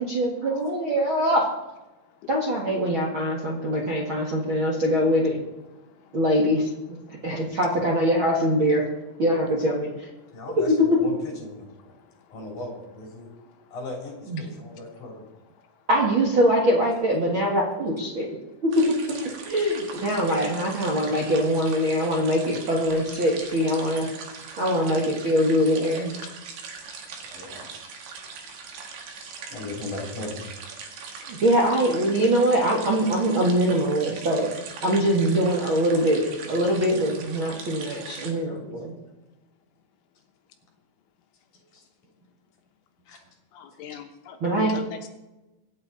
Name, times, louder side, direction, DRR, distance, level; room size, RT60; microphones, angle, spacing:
voice 1, 0.1-1.5 2.3-5.4 6.1-6.7 7.2-8.8 9.2-9.9 10.7-10.9 14.3-14.4 15.9-18.3 18.6-18.7 19.2-24.1 24.6-26.1 31.3-34.5 34.8-38.9 44.4-44.7, equal, 80° right, -2 dB, 1.1 m, -23 dB
voice 2, 10.3-11.7 12.3-13.3 13.7-15.3 27.2-27.6 29.5-30.4 41.5-41.8 43.1-43.2, left 2 dB, 40° left, 0 dB, 4.3 m, -37 dB
sound 1, 18.7-38.3, right 5 dB, 60° right, 3.4 m, -41 dB
voice 3, 43.5-45.1, left 8 dB, 75° left, 4 dB, 3.4 m, -39 dB
25.0 x 8.7 x 4.2 m, 1.0 s
omnidirectional pair, 5.8 m